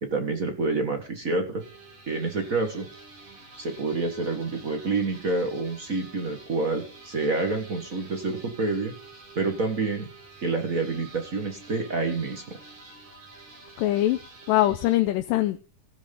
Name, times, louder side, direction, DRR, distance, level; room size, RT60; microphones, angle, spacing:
voice 1, 0.0-1.6 2.1-2.9 3.6-8.9 9.3-10.1 10.4-12.6, right 3 dB, 40° right, 6 dB, 1.3 m, -28 dB
sound 1, 1.6-15.0, right 3 dB, 60° right, 5.4 m, -48 dB
voice 2, 13.8-14.2 14.5-15.6, left 14 dB, 85° left, 8 dB, 2.3 m, -22 dB
16.5 x 6.4 x 5.4 m, 0.36 s
omnidirectional pair, 3.9 m